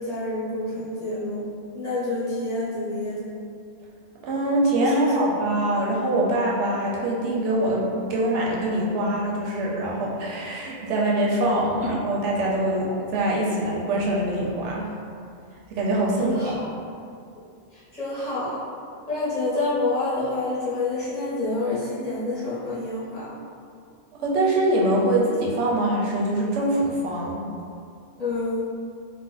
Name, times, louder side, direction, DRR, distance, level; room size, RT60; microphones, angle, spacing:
voice 1, 0.0-1.4 1.7-3.2 4.8-5.3 11.8-11.9 16.2-16.7 17.7-18.6 19.1-23.3 28.2-28.6, left 2 dB, 40° left, -11 dB, 0.6 m, -28 dB
voice 2, 4.2-14.9 15.7-16.5 24.1-27.5, right 1 dB, 75° right, -3 dB, 0.9 m, -24 dB
2.5 x 2.0 x 3.7 m, 2.3 s
omnidirectional pair, 1.2 m